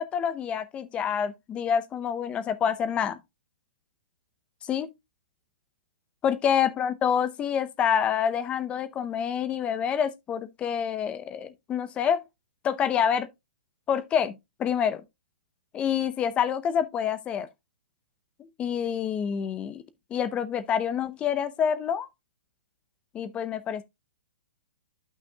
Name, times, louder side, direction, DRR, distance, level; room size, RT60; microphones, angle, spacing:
voice 1, 0.0-3.2 4.6-4.9 6.2-12.2 12.6-13.3 13.9-15.0 15.7-17.5 18.4-19.8 20.1-22.1 23.1-23.8, left 8 dB, 20° left, 0.7 m, -27 dB
12.0 x 5.7 x 2.2 m
hypercardioid pair, 140°, 6 cm